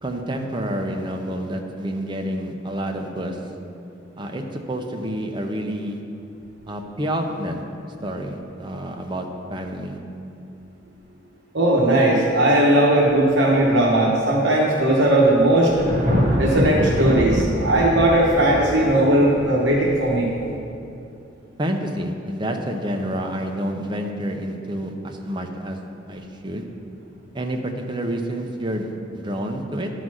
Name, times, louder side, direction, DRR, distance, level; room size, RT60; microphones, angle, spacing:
voice 1, 0.0-3.4 4.2-6.0 6.7-7.6 8.0-10.0 21.6-25.8 26.1-26.7 27.3-29.9, right 1 dB, 25° right, 3 dB, 0.7 m, -28 dB
voice 2, 11.5-15.9 16.4-20.3, right 1 dB, 75° right, -4 dB, 1.1 m, -18 dB
Thunder, 15.1-20.5, equal, 50° right, 1.5 m, -24 dB
11.0 x 4.0 x 6.2 m, 2.6 s
head